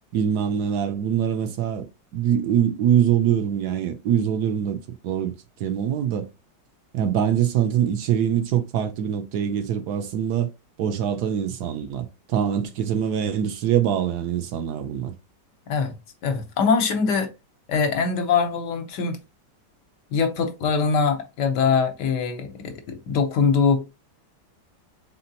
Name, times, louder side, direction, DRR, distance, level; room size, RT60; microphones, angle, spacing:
voice 1, 0.1-1.9 2.1-5.3 5.6-6.3 6.9-10.5 10.8-15.1, right 9 dB, 75° right, 1.1 m, -23 dB
voice 2, 16.2-17.3 17.7-19.2 20.1-23.8, left 5 dB, 75° left, 1.4 m, -22 dB
4.1 x 3.7 x 2.8 m
omnidirectional pair, 1.9 m